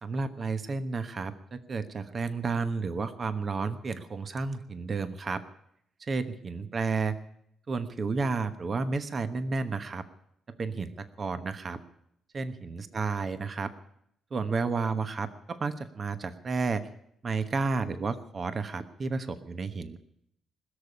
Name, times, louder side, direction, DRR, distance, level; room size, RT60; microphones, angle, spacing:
voice 1, 0.0-5.4 6.0-7.2 7.7-10.0 10.5-11.8 12.3-13.7 14.3-16.8 17.2-20.0, right 4 dB, 40° right, 11 dB, 1.1 m, -31 dB
21.0 x 6.9 x 9.9 m, 0.74 s
cardioid pair, 90°, 0 cm